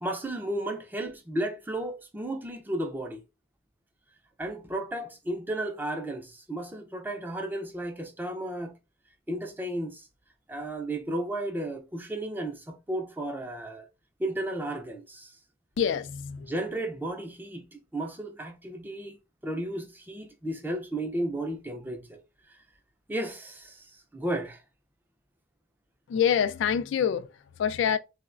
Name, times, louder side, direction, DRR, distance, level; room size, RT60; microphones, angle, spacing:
voice 1, 0.0-3.2 4.4-8.7 9.3-10.1 10.5-13.9 14.2-15.4 16.5-17.6 17.9-19.2 19.4-22.2 22.5-22.6 23.1-24.6, right 1 dB, 10° right, 0.4 m, -33 dB
voice 2, 15.8-16.5 26.1-28.0, left 8 dB, 90° left, 0.3 m, -26 dB
3.7 x 2.1 x 2.4 m
head